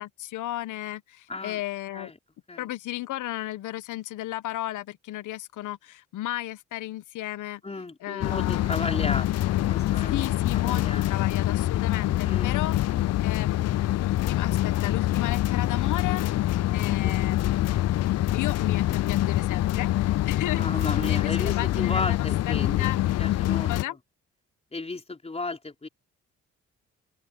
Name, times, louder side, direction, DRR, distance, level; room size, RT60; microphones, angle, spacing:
voice 1, 0.0-2.1 2.6-7.6 8.0-8.7 10.1-12.8 13.2-17.7 18.0-20.6 21.1-23.0 23.7-24.0, left 15 dB, 80° left, 1.1 m, -34 dB
voice 2, 1.3-1.6 1.9-2.2 2.5-2.7 7.6-10.3 10.5-11.3 12.2-12.6 16.7-17.2 20.5-22.9 23.2-24.0 24.7-25.9, left 3 dB, 20° left, 4.8 m, -34 dB
sound 1, 8.2-23.8, left 14 dB, 55° left, 0.5 m, -25 dB
open air
cardioid pair, 90°, 30 cm